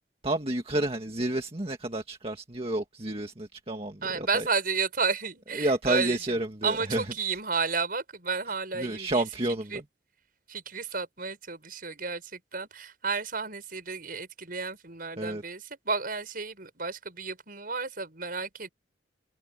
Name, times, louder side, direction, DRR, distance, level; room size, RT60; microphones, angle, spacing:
voice 1, 0.2-4.5 5.5-7.0 8.8-9.8 15.2-15.4, right 1 dB, 30° right, 1.8 m, -30 dB
voice 2, 4.0-9.3 9.7-9.8 10.5-18.7, right 5 dB, 50° right, 6.6 m, -32 dB
head